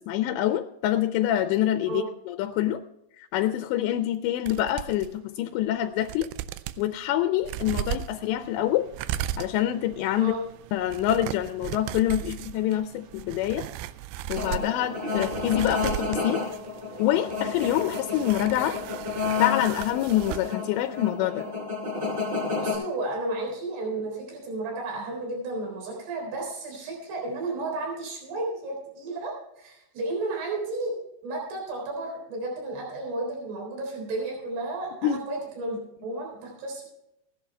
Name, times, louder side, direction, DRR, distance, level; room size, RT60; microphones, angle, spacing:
voice 1, 0.1-2.8 3.2-6.3 6.8-8.9 9.4-10.3 10.7-13.7 14.3-16.4 17.0-18.8 19.4-21.5 35.0-35.2, left 12 dB, 85° left, 9 dB, 2.8 m, -26 dB
sound 1, 4.5-5.1 5.6-5.7 6.0-6.8 7.4-20.6 20.8-20.9, right 13 dB, 85° right, 2.4 m, -37 dB
sound 2, 14.3-22.7, left 4 dB, 25° right, 4.9 m, -31 dB
voice 2, 22.6-30.9 31.2-36.9, right 2 dB, 65° right, 0 dB, 5.8 m, -33 dB
16.5 x 11.0 x 3.3 m, 0.81 s
omnidirectional pair, 5.1 m